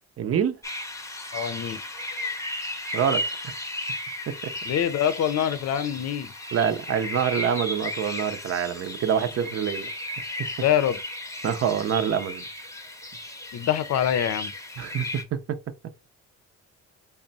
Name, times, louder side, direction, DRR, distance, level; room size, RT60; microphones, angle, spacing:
voice 1, 0.2-0.6 2.9-3.5 4.3-4.4 6.5-9.9 10.4-10.5 11.4-12.4 14.8-15.6, right 8 dB, 50° right, 0.6 m, -26 dB
sound 1, 0.6-15.2, left 1 dB, 10° left, 0.8 m, -35 dB
voice 2, 1.3-1.8 4.7-6.3 10.6-11.0 13.5-14.5, left 10 dB, 55° left, 0.6 m, -25 dB
3.6 x 2.2 x 3.9 m
cardioid pair, 90°, 30 cm